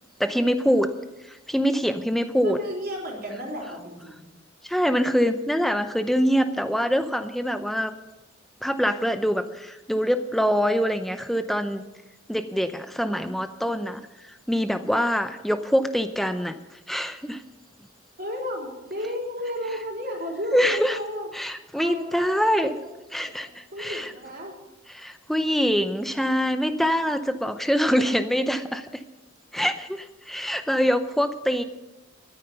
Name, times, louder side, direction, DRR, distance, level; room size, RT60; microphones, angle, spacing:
voice 1, 0.2-0.9 1.3-2.6 4.6-7.9 8.6-11.8 12.3-14.0 14.5-16.5 16.9-17.4 20.5-21.0 21.3-22.7 23.1-24.1 24.9-28.9 29.5-31.6, equal, ahead, 9 dB, 0.6 m, -24 dB
voice 2, 2.4-4.2 18.2-21.3 21.7-24.5 27.8-27.9, left 1 dB, 45° right, -1 dB, 3.8 m, -33 dB
13.5 x 9.6 x 6.7 m, 1.0 s
head